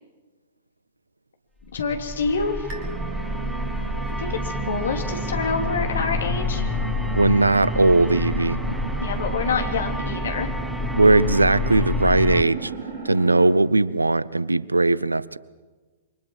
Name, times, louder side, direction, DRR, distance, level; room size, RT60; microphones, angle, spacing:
voice 1, 1.6-2.7 4.2-6.7 9.0-10.5, left 5 dB, 60° left, 4 dB, 2.7 m, -27 dB
sound 1, 1.7-12.4, left 2 dB, ahead, 0.9 m, -28 dB
sound 2, 2.7-13.6, right 6 dB, 35° right, 4.3 m, -34 dB
voice 2, 7.1-8.6 11.0-12.7 13.0-15.4, right 2 dB, 80° right, 22 dB, 0.6 m, -19 dB
27.5 x 24.5 x 4.6 m, 1.3 s
figure-of-eight pair, 110°, 0 cm